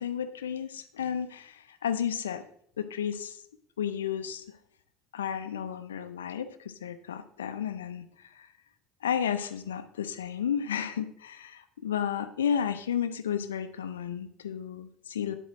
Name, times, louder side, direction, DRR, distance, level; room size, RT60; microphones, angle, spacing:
voice 1, 0.0-2.4 2.8-3.4 3.8-4.4 5.1-8.5 9.0-15.3, left 8 dB, 80° left, 11 dB, 0.6 m, -32 dB
11.0 x 8.0 x 3.2 m, 0.64 s
hypercardioid pair, 65°, 0 cm